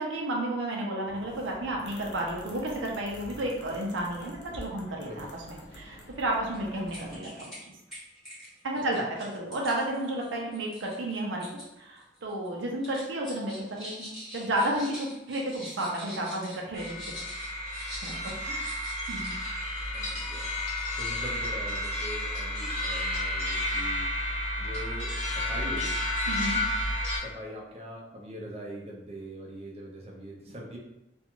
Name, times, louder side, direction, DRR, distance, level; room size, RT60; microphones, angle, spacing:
voice 1, 0.0-7.5 8.6-11.5 11.8-16.9 18.0-19.3 26.3-26.6, right 1 dB, 80° right, -1 dB, 0.5 m, -32 dB
sound 1, 1.1-7.2, equal, 60° left, 0.5 m, -47 dB
voice 2, 5.0-5.5 8.7-8.9 19.8-20.7 21.0-26.0 27.1-30.8, equal, 30° right, -2 dB, 0.5 m, -42 dB
sound 2, 6.5-6.6 6.9-7.6 7.9-11.7 12.0-12.5 12.8-19.5 19.8-20.4, equal, ahead, 1.1 m, -45 dB
sound 3, 16.7-27.2, left 1 dB, 35° left, 0.9 m, -31 dB
2.5 x 2.3 x 2.9 m, 0.93 s
head